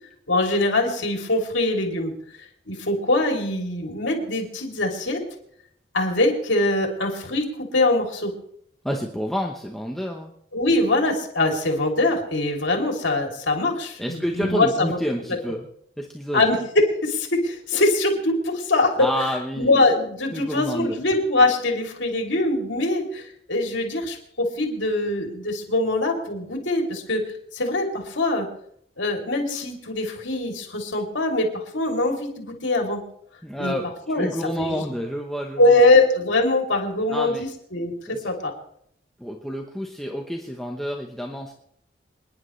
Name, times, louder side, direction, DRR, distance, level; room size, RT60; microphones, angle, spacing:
voice 1, 0.3-2.1 2.7-5.2 5.9-8.3 10.5-15.0 16.3-19.1 19.6-27.2 27.5-28.5 29.0-33.0 33.6-33.7 34.1-34.3 34.6-34.8 35.6-38.5, left 2 dB, 85° left, 1 dB, 3.2 m, -22 dB
voice 2, 8.8-10.3 14.0-15.7 16.0-16.4 19.0-19.8 20.3-21.0 33.4-35.6 37.1-37.4 38.1-38.3 39.2-41.5, equal, ahead, 0 dB, 1.0 m, -29 dB
27.5 x 10.5 x 3.3 m, 0.70 s
head